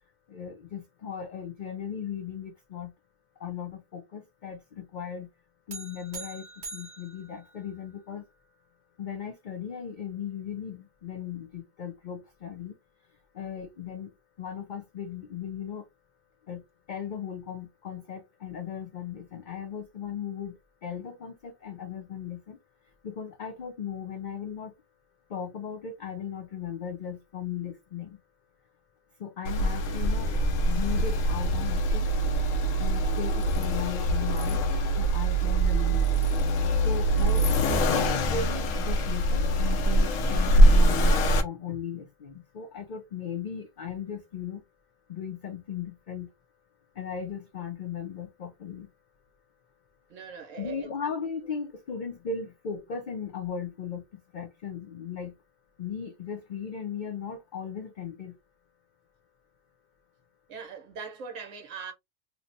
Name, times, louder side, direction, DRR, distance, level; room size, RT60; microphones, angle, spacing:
voice 1, 0.3-2.9 3.4-5.3 5.7-6.4 6.7-8.2 9.0-12.7 13.4-14.1 14.4-15.8 16.5-16.6 16.9-20.5 20.8-22.6 23.0-24.7 25.3-28.2 29.2-30.3 30.6-32.1 32.8-34.6 35.0-36.2 36.8-44.6 45.1-46.3 47.0-48.9 50.6-54.0 54.3-55.3 55.8-58.3, left 7 dB, 55° left, 0.6 m, -37 dB
sound 1, 5.7-8.2, right 3 dB, 45° right, 0.8 m, -44 dB
Accelerating revving vroom, 29.4-41.4, right 1 dB, 90° left, 1.1 m, -23 dB
voice 2, 50.1-51.1 60.5-61.9, right 5 dB, 80° right, 1.1 m, -41 dB
3.1 x 2.1 x 3.9 m
omnidirectional pair, 1.3 m